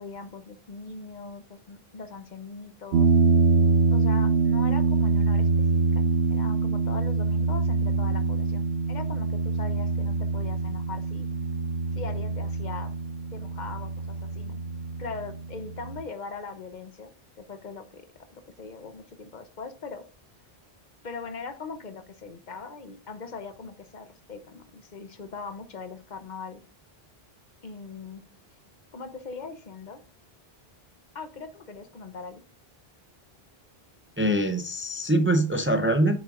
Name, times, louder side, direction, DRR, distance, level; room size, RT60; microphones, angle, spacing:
voice 1, 0.0-3.1 3.9-5.7 6.0-11.3 11.9-13.0 13.3-14.6 15.0-20.1 21.0-26.6 27.6-28.3 28.9-30.0 31.1-32.4, left 4 dB, 50° left, 9 dB, 0.9 m, -40 dB
sound 1, 2.9-16.0, right 4 dB, 70° right, 0.8 m, -25 dB
voice 2, 34.2-36.2, right 1 dB, 15° right, 7 dB, 0.5 m, -23 dB
8.6 x 6.2 x 2.5 m, 0.38 s
omnidirectional pair, 1.0 m